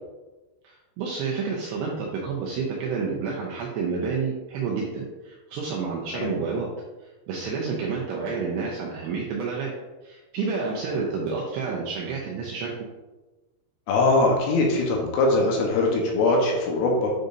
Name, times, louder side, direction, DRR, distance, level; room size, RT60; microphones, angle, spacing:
voice 1, 0.6-6.7 7.0-9.7 10.0-12.7, right 5 dB, 80° right, -3 dB, 2.4 m, -29 dB
voice 2, 13.9-17.1, left 2 dB, 85° left, -1 dB, 3.7 m, -22 dB
9.0 x 5.1 x 2.7 m, 1.2 s
omnidirectional pair, 5.6 m